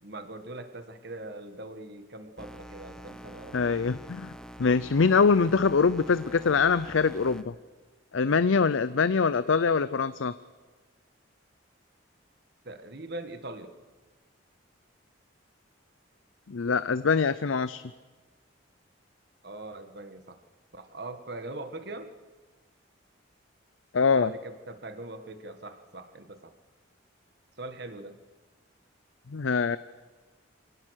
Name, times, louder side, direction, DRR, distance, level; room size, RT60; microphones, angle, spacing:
voice 1, 0.0-3.9 12.6-13.7 19.4-20.4 20.7-22.1 24.1-26.5 27.6-28.2, right 2 dB, 55° right, 9 dB, 1.6 m, -41 dB
sound 1, 2.4-7.4, right 1 dB, 5° left, 0.9 m, -46 dB
voice 2, 3.5-4.3 4.6-7.5 8.1-10.3 16.5-17.8 23.9-24.3 29.3-29.8, left 5 dB, 80° left, 15 dB, 0.6 m, -24 dB
25.5 x 17.5 x 6.4 m, 1.3 s
head